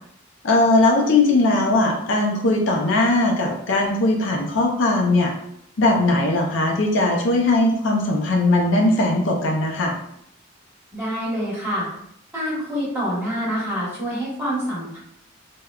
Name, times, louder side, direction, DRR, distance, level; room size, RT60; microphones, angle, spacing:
voice 1, 0.4-5.3 5.8-9.9, left 2 dB, 65° left, 1 dB, 0.4 m, -19 dB
voice 2, 10.9-11.9 12.3-15.0, equal, 10° right, -8 dB, 1.2 m, -26 dB
3.5 x 2.1 x 2.2 m, 0.75 s
head